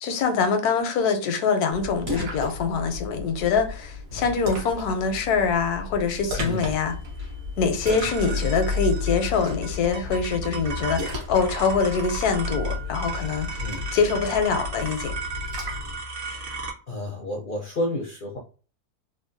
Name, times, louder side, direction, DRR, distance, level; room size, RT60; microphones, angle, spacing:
voice 1, 0.0-7.0 7.6-13.7 13.9-15.1, left 5 dB, 80° left, 1.2 m, -24 dB
Splash splatter, 1.7-16.0, left 3 dB, 65° right, 1.4 m, -33 dB
voice 2, 6.4-6.7 7.9-8.0 13.6-13.9 16.2-16.4 16.9-18.4, left 1 dB, 60° left, 0.5 m, -31 dB
sound 1, 6.6-16.7, right 4 dB, 45° right, 0.8 m, -36 dB
3.4 x 2.2 x 2.6 m
omnidirectional pair, 1.6 m